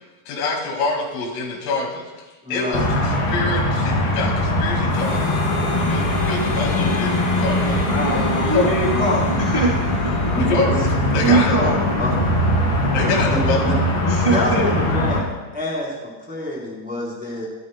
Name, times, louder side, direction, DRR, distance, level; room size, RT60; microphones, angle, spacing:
voice 1, 0.3-2.1 2.5-7.9 8.5-8.7 10.3-10.8 11.1-11.6 12.9-13.7, left 3 dB, 80° left, 1 dB, 4.8 m, -26 dB
voice 2, 2.4-2.8 8.9-9.2 10.7-10.9 12.0-12.1 13.0-13.7 14.3-15.2 15.5-17.4, left 1 dB, ahead, -4 dB, 2.7 m, -27 dB
sound 1, 2.7-15.2, left 1 dB, 35° left, 2.4 m, -21 dB
Harmonica, 4.9-11.3, equal, 50° left, 4.3 m, -34 dB
voice 3, 7.9-9.7 10.0-10.5 11.1-11.8 12.9-13.2 14.0-14.6, right 2 dB, 85° right, -5 dB, 0.5 m, -22 dB
24.0 x 12.5 x 2.3 m, 1.2 s
omnidirectional pair, 5.8 m